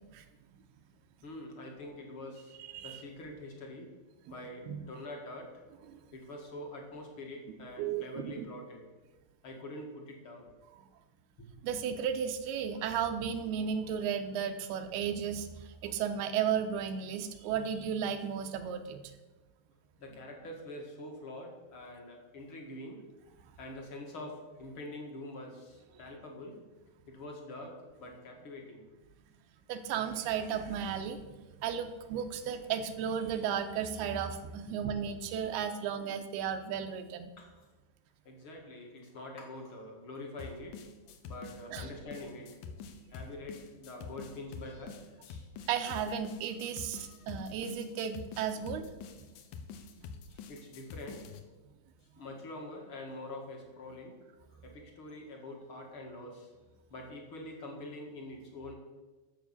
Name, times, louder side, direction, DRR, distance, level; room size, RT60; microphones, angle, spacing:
voice 1, 1.2-2.5 2.8-3.9 4.3-5.5 6.1-8.9 9.4-10.5 11.4-11.5 20.0-23.0 23.6-26.6 27.1-28.8 37.4-37.7 38.2-40.8 41.3-42.5 43.1-45.5 46.9-47.4 50.3-51.3 52.2-54.2 54.6-56.5 56.9-58.7, left 1 dB, 45° left, 1 dB, 1.9 m, -45 dB
voice 2, 7.8-8.5 11.6-19.0 29.7-31.2 31.6-37.3 41.7-41.9 45.7-48.9, right 8 dB, 80° right, 7 dB, 2.7 m, -34 dB
sound 1, 40.4-51.4, left 5 dB, 75° left, 2.0 m, -46 dB
12.0 x 7.2 x 7.2 m, 1.2 s
omnidirectional pair, 4.7 m